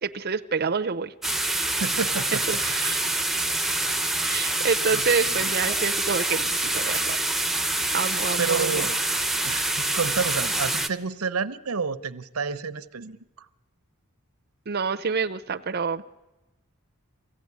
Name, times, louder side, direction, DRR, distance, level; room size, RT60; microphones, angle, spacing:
voice 1, 0.0-1.1 2.5-3.0 4.2-7.2 7.9-8.9 14.7-16.0, right 5 dB, 45° right, 7 dB, 0.6 m, -27 dB
sound 1, 1.2-10.9, right 2 dB, ahead, 0.8 m, -26 dB
voice 2, 1.8-2.4 4.9-5.5 8.4-9.0 9.4-13.5, right 5 dB, 90° right, 14 dB, 0.8 m, -30 dB
23.5 x 15.5 x 9.5 m, 1.1 s
head